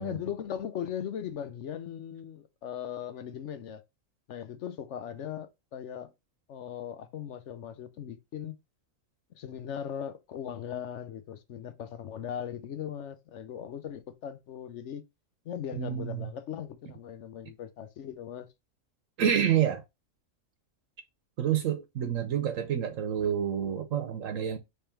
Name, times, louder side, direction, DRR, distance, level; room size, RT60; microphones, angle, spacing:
voice 1, 0.0-3.8 4.3-6.1 6.5-8.5 9.3-15.0 15.4-18.5, left 9 dB, 65° left, 1.0 m, -38 dB
voice 2, 15.7-16.3 19.2-19.8 21.4-24.6, right 9 dB, 75° right, 1.1 m, -28 dB
3.5 x 3.3 x 4.4 m
omnidirectional pair, 1.4 m